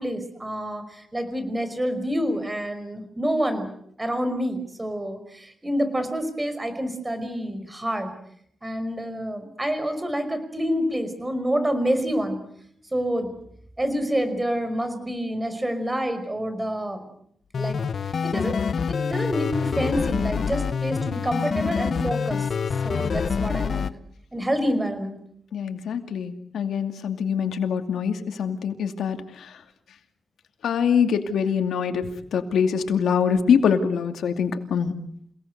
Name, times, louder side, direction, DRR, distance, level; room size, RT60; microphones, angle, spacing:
voice 1, 0.0-3.7 4.0-8.1 8.6-12.4 12.9-13.3 13.8-17.1 17.6-17.8 18.2-18.6 18.9-22.5 22.8-23.9 24.3-25.2, equal, 15° right, 10 dB, 5.3 m, -27 dB
sound 1, 17.5-23.9, left 6 dB, 60° left, 1.1 m, -26 dB
voice 2, 25.5-29.5 30.6-34.9, left 7 dB, 90° left, 7 dB, 2.5 m, -24 dB
29.0 x 18.5 x 8.1 m, 0.68 s
cardioid pair, 95°, 0 cm